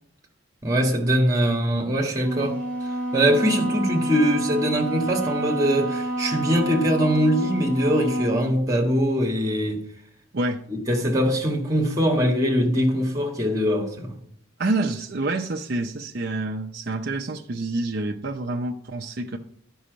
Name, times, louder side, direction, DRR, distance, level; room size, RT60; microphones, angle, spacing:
voice 1, 0.6-2.6 3.1-9.8 10.7-14.2, equal, 15° right, 1.5 m, -22 dB
Wind instrument woodwind instrument, 2.2-8.5, right 1 dB, 5° left, 1.8 m, -28 dB
voice 2, 14.6-19.4, right 2 dB, 50° right, 0.6 m, -27 dB
11.5 x 5.5 x 5.1 m
head